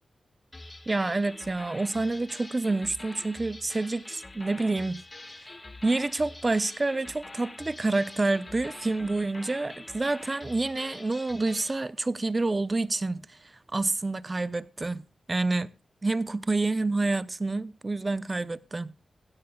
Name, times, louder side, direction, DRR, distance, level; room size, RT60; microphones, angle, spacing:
sound 1, 0.5-11.8, left 2 dB, 30° left, 1.7 m, -45 dB
voice 1, 0.9-5.0 5.4-5.5 5.8-13.4 13.7-15.0 15.3-15.7 16.0-18.9, right 2 dB, 30° right, 0.7 m, -28 dB
sound 2, 7.6-13.5, right 3 dB, 70° right, 4.3 m, -59 dB
17.0 x 16.5 x 2.3 m
cardioid pair, 60°, 0 cm